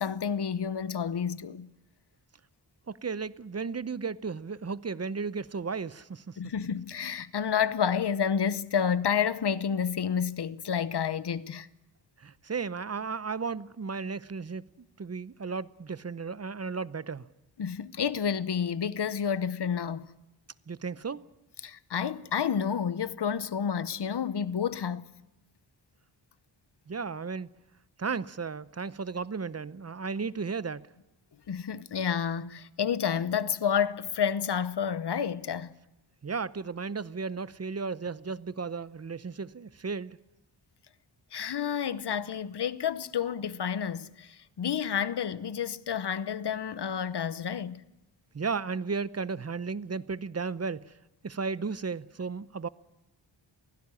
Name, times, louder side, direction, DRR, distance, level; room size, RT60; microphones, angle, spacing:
voice 1, 0.0-1.7 6.4-11.7 17.6-20.1 21.6-25.1 31.5-35.7 41.3-47.8, left 7 dB, 60° left, 0.9 m, -30 dB
voice 2, 2.9-6.4 12.2-17.3 20.7-21.3 26.9-27.5 28.0-30.9 36.2-40.2 48.3-50.9 51.2-52.7, right 5 dB, 35° right, 0.7 m, -34 dB
24.0 x 16.5 x 9.8 m
wide cardioid pair, 75°, 46 cm